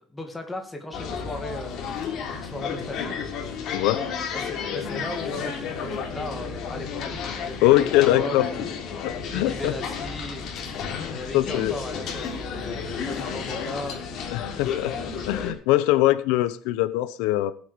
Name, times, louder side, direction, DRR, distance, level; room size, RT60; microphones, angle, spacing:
voice 1, 0.0-1.9 2.4-3.1 4.3-7.1 7.4-8.6 9.2-10.8 11.0-14.0, left 2 dB, 10° left, 3 dB, 2.2 m, -37 dB
sound 1, 0.9-15.5, left 6 dB, 45° left, 3.3 m, -32 dB
voice 2, 3.7-4.0 7.6-8.5 9.0-9.7 10.9-11.7 14.3-14.9 15.3-17.5, left 15 dB, 80° left, 14 dB, 0.8 m, -22 dB
18.5 x 8.3 x 5.1 m, 0.43 s
cardioid pair, 175°, 0 cm